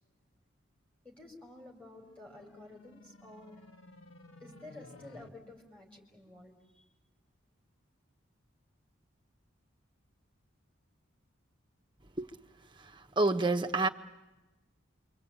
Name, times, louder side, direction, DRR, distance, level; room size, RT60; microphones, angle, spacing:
voice 1, 1.0-3.7 4.4-6.8, left 2 dB, 5° left, 4.4 m, -52 dB
sound 1, 2.0-5.3, left 2 dB, 85° left, 2.0 m, -55 dB
voice 2, 12.8-13.9, right 2 dB, 25° right, 1.0 m, -29 dB
27.5 x 24.5 x 8.8 m
head